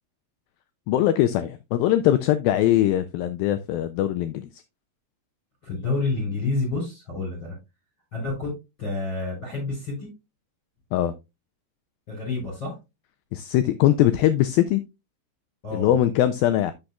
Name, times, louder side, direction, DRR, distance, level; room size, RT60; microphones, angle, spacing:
voice 1, 0.9-4.6 10.9-11.1 13.3-14.8 15.7-16.7, left 12 dB, 90° left, 2.1 m, -21 dB
voice 2, 5.6-7.6 8.1-8.5 8.8-10.1 12.1-12.8 15.6-16.0, left 3 dB, 30° left, 5.4 m, -29 dB
11.5 x 6.5 x 2.3 m
omnidirectional pair, 4.7 m